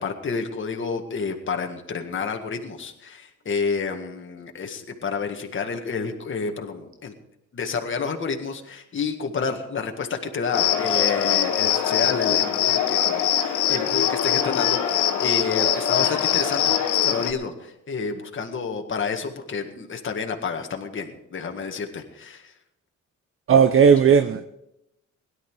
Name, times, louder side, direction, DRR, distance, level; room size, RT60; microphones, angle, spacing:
voice 1, 0.0-7.1 7.5-22.5, left 5 dB, 40° left, 1.9 m, -30 dB
Cricket, 10.5-17.3, left 9 dB, 85° left, 1.5 m, -22 dB
voice 2, 23.5-24.4, right 7 dB, 45° right, 0.7 m, -15 dB
17.5 x 11.5 x 4.8 m
cardioid pair, 90°, 30 cm